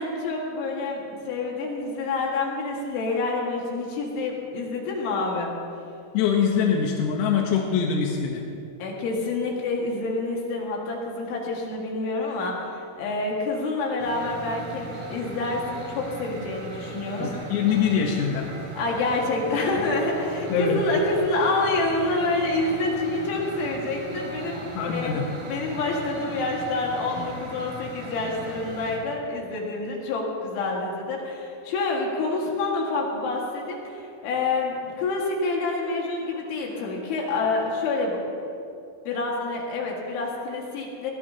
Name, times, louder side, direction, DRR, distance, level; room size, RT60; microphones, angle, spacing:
voice 1, 0.0-5.5 8.8-17.3 18.7-25.2 25.5-38.2 39.1-41.1, left 3 dB, 70° left, -2 dB, 4.1 m, -27 dB
voice 2, 6.1-8.4 17.2-18.5 20.5-20.8 24.8-25.3, left 7 dB, 85° left, 0 dB, 3.8 m, -23 dB
sound 1, 14.0-29.0, right 3 dB, 70° right, 6.2 m, -38 dB
22.0 x 18.5 x 2.9 m, 2.7 s
omnidirectional pair, 5.9 m